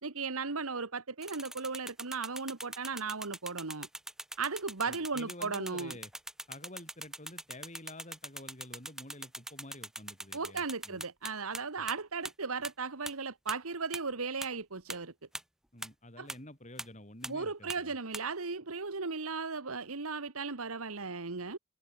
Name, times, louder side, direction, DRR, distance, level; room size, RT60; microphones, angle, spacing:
voice 1, 0.0-3.9 4.4-6.0 10.3-15.1 16.2-16.3 17.3-21.6, right 4 dB, 85° right, 1.6 m, -36 dB
sound 1, 1.2-11.6 11.9-12.0 12.2-12.3 12.6-12.7 13.1-13.2 13.5-13.6 13.9-14.0 14.4-14.5 14.9-15.0 15.3-15.4 15.8-15.9 16.3-16.4 16.8-16.9 17.2-17.3 17.7-17.8 18.1-18.2, right 1 dB, ahead, 0.3 m, -40 dB
voice 2, 4.9-6.1 6.5-11.0 15.7-17.9, left 1 dB, 35° left, 7.8 m, -49 dB
head